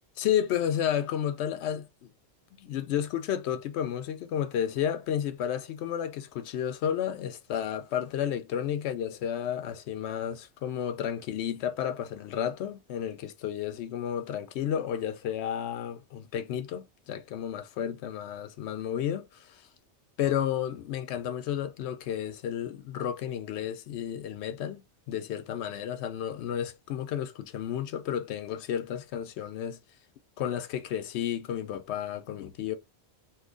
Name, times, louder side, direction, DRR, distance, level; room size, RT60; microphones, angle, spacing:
voice 1, 0.2-2.1 2.5-19.6 20.2-29.8 30.4-32.8, left 9 dB, 80° left, 0.8 m, -32 dB
2.7 x 2.3 x 3.8 m
omnidirectional pair, 1.1 m